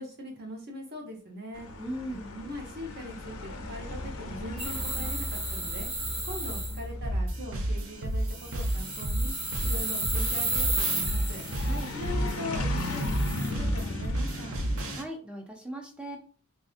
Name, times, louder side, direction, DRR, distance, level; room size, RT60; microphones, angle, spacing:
voice 1, 0.0-1.7 2.1-11.5 11.9-14.6, left 1 dB, 50° right, 0 dB, 0.9 m, -41 dB
sound 1, 1.5-15.0, left 1 dB, 70° left, 0.5 m, -37 dB
voice 2, 1.8-2.3 11.6-11.9 14.9-16.2, right 1 dB, 5° right, 1 dB, 0.5 m, -38 dB
sound 2, 4.6-6.8 8.3-11.8 12.8-13.5, right 2 dB, 25° right, 1.2 m, -33 dB
sound 3, 7.0-15.0, right 1 dB, 70° right, 0.6 m, -31 dB
3.3 x 2.6 x 2.5 m, 0.42 s
head